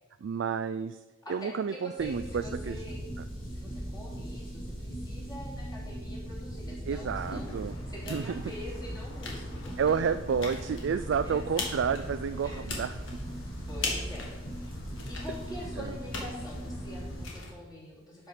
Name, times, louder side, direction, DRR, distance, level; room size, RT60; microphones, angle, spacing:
voice 1, 0.2-1.0 1.3-2.8 3.2-3.3 6.9-7.7 8.1-8.4 9.8-13.0 15.8-15.9, right 6 dB, 60° right, 10 dB, 0.3 m, -30 dB
voice 2, 1.2-3.0 3.5-10.1 11.2-11.7 12.4-12.7 13.7-14.7 15.1-18.3, left 1 dB, 20° left, -5 dB, 2.8 m, -45 dB
sound 1, 2.0-17.2, equal, 40° left, 3.5 m, -39 dB
sound 2, 7.1-17.5, left 3 dB, 65° left, 1.8 m, -41 dB
12.0 x 5.7 x 5.0 m, 1.3 s
head